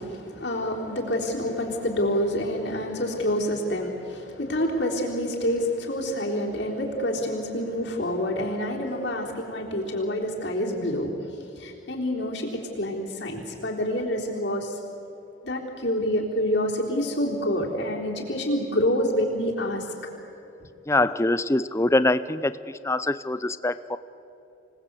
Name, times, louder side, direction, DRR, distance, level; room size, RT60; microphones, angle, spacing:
voice 1, 0.0-14.8 15.4-19.9, equal, 60° left, -2 dB, 3.7 m, -27 dB
voice 2, 20.9-24.0, left 2 dB, 15° left, 14 dB, 0.6 m, -24 dB
26.5 x 19.0 x 8.2 m, 2.8 s
head